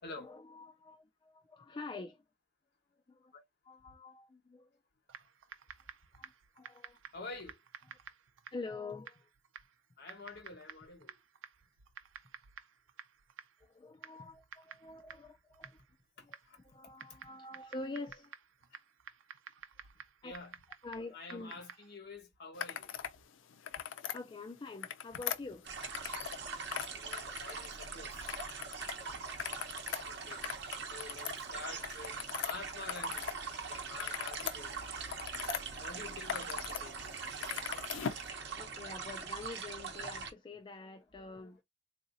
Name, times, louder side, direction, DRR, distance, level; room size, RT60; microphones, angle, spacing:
voice 1, 0.0-2.2 3.1-3.3 3.6-4.7 6.2-7.0 8.5-9.3 13.6-15.8 16.2-18.3 20.2-20.3 20.8-21.6 24.1-25.6 28.9-29.2 38.6-41.6, left 3 dB, 25° left, 0.4 m, -46 dB
Typing, 5.1-22.0, right 8 dB, 85° right, 0.5 m, -54 dB
voice 2, 7.1-7.5 10.0-11.1 20.2-20.5 21.1-22.9 26.9-28.2 30.1-30.4 30.9-33.2 33.7-34.7 35.8-37.1, left 3 dB, 60° left, 1.2 m, -48 dB
sound 1, 22.6-23.2 23.5-24.2 24.7-26.4 26.7-27.9 28.3-28.9 29.3-33.4 33.7-35.6 36.1-36.8 37.1-38.3, left 9 dB, 90° left, 0.5 m, -40 dB
sound 2, 25.6-40.3, right 5 dB, 65° right, 0.9 m, -42 dB
3.9 x 2.7 x 2.5 m
head